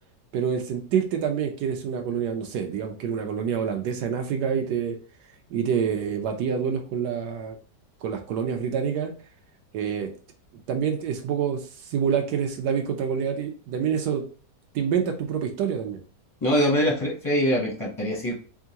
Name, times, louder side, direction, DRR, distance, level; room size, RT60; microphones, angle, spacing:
voice 1, 0.3-5.0 5.5-7.6 8.0-9.1 9.7-10.1 10.7-14.3 14.7-16.0, right 7 dB, 80° right, 4 dB, 1.2 m, -27 dB
voice 2, 16.4-18.4, equal, 20° left, -2 dB, 0.5 m, -23 dB
3.6 x 3.5 x 2.8 m, 0.40 s
omnidirectional pair, 1.8 m